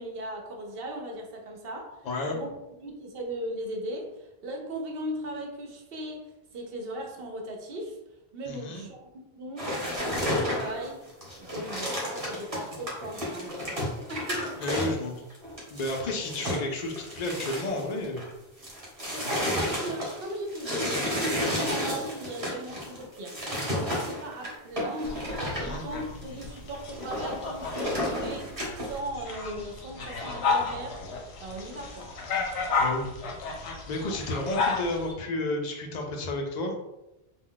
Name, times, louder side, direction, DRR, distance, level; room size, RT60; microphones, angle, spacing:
voice 1, 0.0-1.9 2.3-2.5 2.8-6.3 6.5-8.0 8.3-11.0 11.4-14.6 19.1-23.4 23.7-25.3 25.5-31.0 31.4-32.1, right 1 dB, 65° right, 1 dB, 0.8 m, -38 dB
voice 2, 2.0-2.4 8.5-8.9 14.6-15.2 15.7-18.2 19.2-19.7 25.6-25.8 32.8-33.1 33.4-36.7, left 2 dB, 55° left, 2 dB, 0.5 m, -32 dB
sound 1, 9.6-18.3 18.6-25.7 26.2-26.4 26.7-29.0, left 1 dB, 35° right, 1.0 m, -32 dB
sound 2, 25.0-35.1, left 4 dB, 75° left, 0.9 m, -33 dB
2.3 x 2.1 x 3.7 m, 0.93 s
omnidirectional pair, 1.1 m